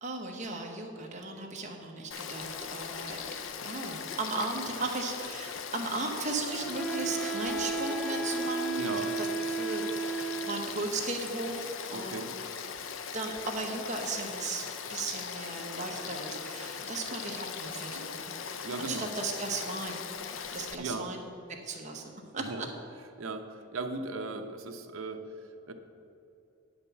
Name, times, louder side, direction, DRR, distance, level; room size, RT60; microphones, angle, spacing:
voice 1, 0.0-3.2 3.6-8.9 9.2-12.2 13.1-20.0 20.5-21.3 21.6-22.7, right 3 dB, 30° right, 2 dB, 1.0 m, -36 dB
Frog / Stream, 2.1-20.8, left 6 dB, 60° left, 0.5 m, -40 dB
sound 1, 6.3-9.7, left 3 dB, 85° left, 2.1 m, -44 dB
Wind instrument woodwind instrument, 6.8-10.9, right 4 dB, 5° left, 0.4 m, -33 dB
voice 2, 8.7-9.1 11.9-12.3 18.6-19.1 20.8-21.1 22.4-22.7 23.2-25.7, right 3 dB, 70° right, 6 dB, 0.8 m, -37 dB
9.2 x 5.3 x 7.1 m, 2.7 s
head